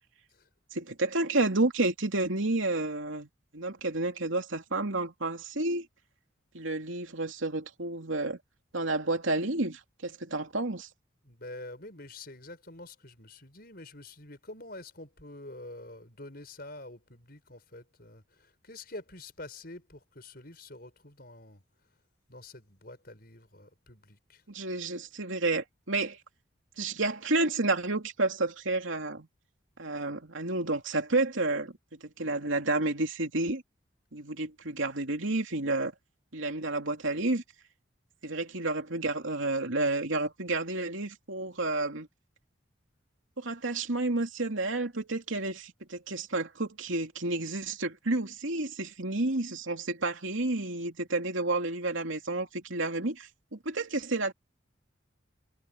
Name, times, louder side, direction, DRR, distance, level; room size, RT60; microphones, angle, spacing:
voice 1, 0.7-5.9 6.5-8.4 8.7-10.9 24.5-26.2 26.8-29.3 29.8-31.7 32.0-33.6 34.1-35.9 36.3-37.4 38.2-42.1 43.4-54.3, right 2 dB, 80° right, 2.8 m, -30 dB
voice 2, 11.2-21.6 22.3-24.4, left 2 dB, 50° left, 6.3 m, -47 dB
head